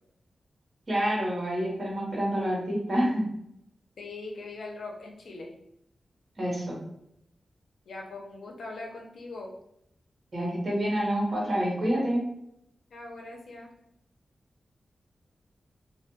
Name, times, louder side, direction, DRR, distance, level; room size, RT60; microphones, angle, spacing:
voice 1, 0.9-3.2 6.4-6.6 10.3-12.2, equal, 45° right, -5 dB, 1.0 m, -27 dB
voice 2, 4.0-5.5 7.9-9.5 12.9-13.7, left 3 dB, 90° left, 0 dB, 0.5 m, -41 dB
2.4 x 2.2 x 2.8 m, 0.77 s
wide cardioid pair, 100°, 0 cm